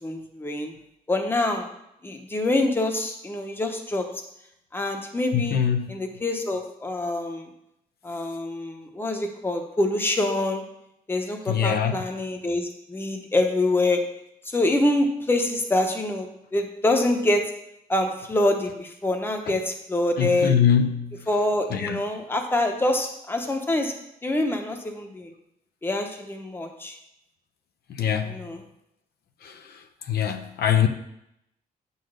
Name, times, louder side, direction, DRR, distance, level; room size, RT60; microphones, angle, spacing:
voice 1, 0.0-0.7 1.1-1.7 2.0-4.1 4.7-5.6 5.9-7.5 8.0-10.6 11.1-14.0 14.5-17.5 17.9-20.5 21.3-23.9 24.2-25.3 25.8-27.0 28.2-28.6, left 1 dB, 15° left, 3 dB, 0.9 m, -25 dB
voice 2, 5.3-5.9 11.5-12.0 20.2-21.1 21.7-22.0 28.0-28.3 29.4-29.5 30.1-30.9, left 8 dB, 80° left, 5 dB, 0.8 m, -22 dB
9.1 x 4.0 x 6.5 m, 0.80 s
wide cardioid pair, 170°, 16 cm